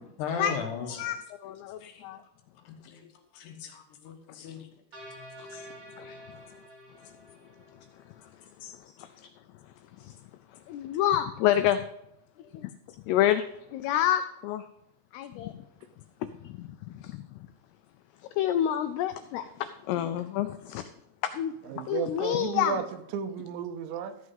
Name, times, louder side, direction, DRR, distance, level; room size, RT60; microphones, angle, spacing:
voice 1, 0.2-1.0 1.8-2.1 2.7-3.0 3.3-4.7 5.5-5.6 8.6-8.7 12.4-12.5, left 6 dB, 70° left, 3 dB, 3.2 m, -37 dB
voice 2, 0.9-2.2 5.4-5.5 6.0-6.4 8.8-9.1 10.0-10.1 10.7-11.8 12.5-12.7 13.1-13.4 13.7-14.6 15.1-15.6 16.2-17.4 18.4-20.8 21.2-22.8, left 11 dB, 85° left, 9 dB, 2.3 m, -29 dB
sound 1, 4.9-8.2, equal, 35° right, 3.3 m, -48 dB
voice 3, 21.6-22.8 23.1-24.2, right 8 dB, 85° right, 9 dB, 3.0 m, -33 dB
14.5 x 6.4 x 5.4 m, 0.81 s
omnidirectional pair, 5.3 m